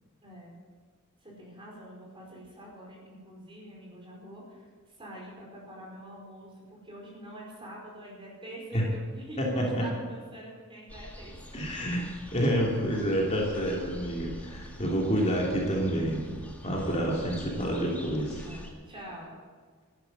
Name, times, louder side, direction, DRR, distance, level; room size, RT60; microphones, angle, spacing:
voice 1, 0.2-0.5 1.2-11.6 14.5-14.7 17.2-17.5 18.4-19.3, right 1 dB, 25° right, -2 dB, 5.1 m, -46 dB
voice 2, 9.4-9.8 11.5-12.0 12.3-16.3 16.6-18.4, equal, 30° left, -2 dB, 2.8 m, -28 dB
sound 1, 10.9-18.7, equal, 5° left, 1.8 m, -45 dB
13.5 x 11.0 x 7.9 m, 1.5 s
head